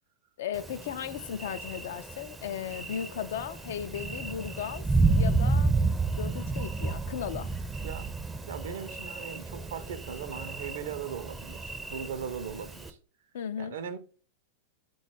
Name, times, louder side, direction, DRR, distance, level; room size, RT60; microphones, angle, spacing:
voice 1, 0.4-4.9 5.2-5.8 6.2-7.5 13.3-13.7, left 8 dB, 60° left, 0.3 m, -36 dB
Thunder, 0.5-12.9, right 3 dB, 10° right, 0.5 m, -31 dB
voice 2, 7.8-8.1 8.5-13.0 13.6-14.0, right 7 dB, 60° right, 0.5 m, -39 dB
3.9 x 2.3 x 4.4 m
figure-of-eight pair, 90°, 0 cm